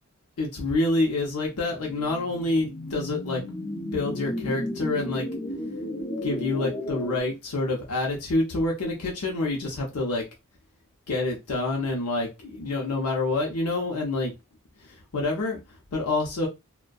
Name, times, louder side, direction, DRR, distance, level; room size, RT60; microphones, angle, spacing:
voice 1, 0.4-3.4 3.9-5.3 6.2-10.2 11.1-14.3 14.8-15.6 15.9-16.5, left 2 dB, 85° left, -1 dB, 0.6 m, -27 dB
sound 1, 1.7-7.2, left 1 dB, 30° left, 0.5 m, -33 dB
2.5 x 2.2 x 2.2 m, 0.23 s
head